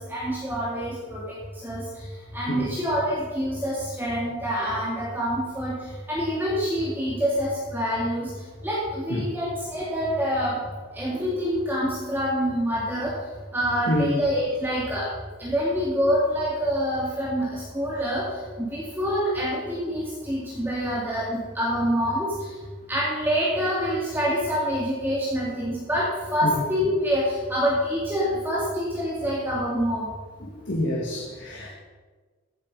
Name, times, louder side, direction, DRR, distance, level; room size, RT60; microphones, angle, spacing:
voice 1, 0.0-1.4 1.6-1.9 2.3-5.8 6.1-8.3 8.6-10.6 10.9-13.1 13.5-15.1 15.4-18.3 18.6-22.3 22.9-30.1, equal, 10° right, -6 dB, 2.2 m, -26 dB
voice 2, 30.7-31.7, left 1 dB, 55° left, -3 dB, 2.0 m, -27 dB
15.5 x 8.1 x 5.4 m, 1.4 s
head